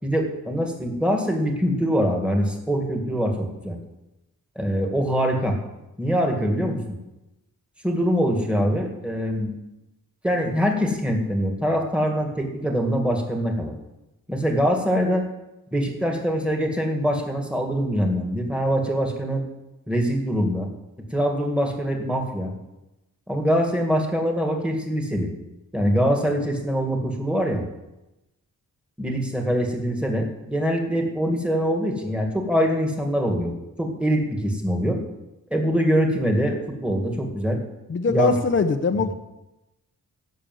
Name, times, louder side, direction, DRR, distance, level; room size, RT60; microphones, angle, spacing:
voice 1, 0.0-3.8 4.6-5.6 6.0-6.8 7.8-9.5 10.2-13.7 14.3-15.3 15.7-19.5 19.9-20.7 21.1-22.5 23.3-25.3 25.7-27.6 29.0-35.0 35.5-37.6 38.1-38.3, equal, 5° right, 2 dB, 2.1 m, -23 dB
voice 2, 37.9-39.1, left 4 dB, 35° left, 6 dB, 0.7 m, -22 dB
16.0 x 6.9 x 7.7 m, 0.97 s
wide cardioid pair, 160°, 34 cm